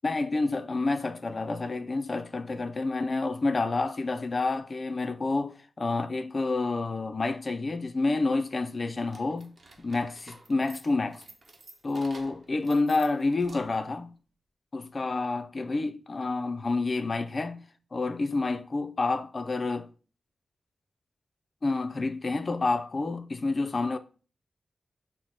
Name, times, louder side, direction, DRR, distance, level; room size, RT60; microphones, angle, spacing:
voice 1, 0.0-9.5 9.8-11.2 11.8-14.1 14.7-17.6 17.9-19.9 21.6-24.0, left 3 dB, 50° left, 0.4 m, -29 dB
sound 1, 9.0-13.9, right 2 dB, 55° right, 0.9 m, -51 dB
5.7 x 2.0 x 3.9 m
cardioid pair, 45°, 0 cm